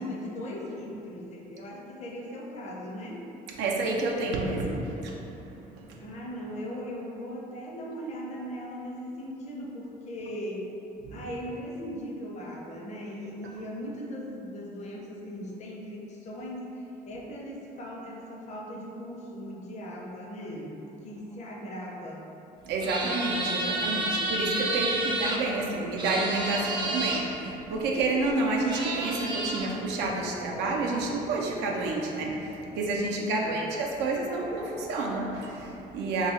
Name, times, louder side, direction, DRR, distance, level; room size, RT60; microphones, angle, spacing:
voice 1, 0.0-3.2 6.0-10.7 11.1-22.2 33.2-33.7, equal, 45° left, -2 dB, 0.6 m, -38 dB
voice 2, 3.6-5.3 5.6-6.0 11.0-11.2 22.6-36.3, right 2 dB, 85° right, -1 dB, 0.4 m, -29 dB
sound 1, 22.8-25.4 26.0-27.2 28.2-28.3 28.6-29.7, right 2 dB, 25° right, 0.4 m, -30 dB
2.7 x 2.3 x 4.1 m, 2.9 s
cardioid pair, 110°, 17 cm